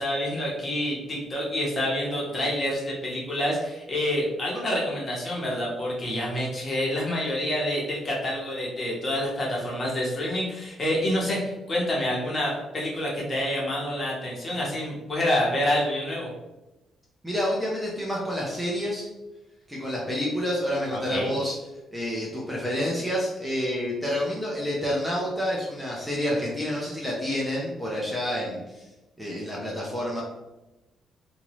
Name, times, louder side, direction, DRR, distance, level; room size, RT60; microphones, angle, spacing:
voice 1, 0.0-16.3 20.9-21.3, left 1 dB, 35° left, -4 dB, 1.2 m, -27 dB
voice 2, 17.2-19.1 19.7-21.6 21.9-28.8 29.2-30.2, equal, 5° right, -4 dB, 0.7 m, -28 dB
2.9 x 2.6 x 3.0 m, 1.0 s
cardioid pair, 90°, 0 cm